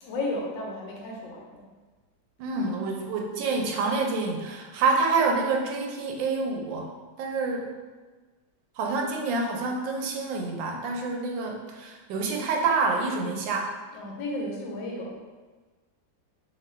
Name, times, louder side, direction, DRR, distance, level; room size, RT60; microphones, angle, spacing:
voice 1, 0.0-1.7 13.9-15.2, left 2 dB, 80° left, -1 dB, 1.5 m, -33 dB
voice 2, 2.4-6.9 7.2-7.7 8.8-13.7, right 4 dB, 85° right, 1 dB, 1.4 m, -27 dB
3.1 x 3.0 x 4.2 m, 1.3 s
omnidirectional pair, 2.0 m